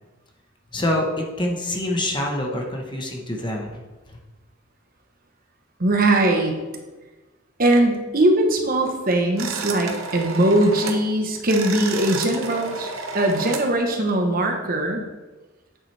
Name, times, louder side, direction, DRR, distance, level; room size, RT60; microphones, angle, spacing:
voice 1, 0.7-3.8, left 1 dB, 20° left, 1 dB, 1.0 m, -26 dB
voice 2, 5.8-6.6 7.6-12.9 13.1-15.0, right 1 dB, 45° right, 3 dB, 1.0 m, -20 dB
sound 1, 9.4-11.1 11.4-13.7, right 4 dB, 80° right, 1.0 m, -31 dB
8.9 x 7.2 x 3.3 m, 1.2 s
head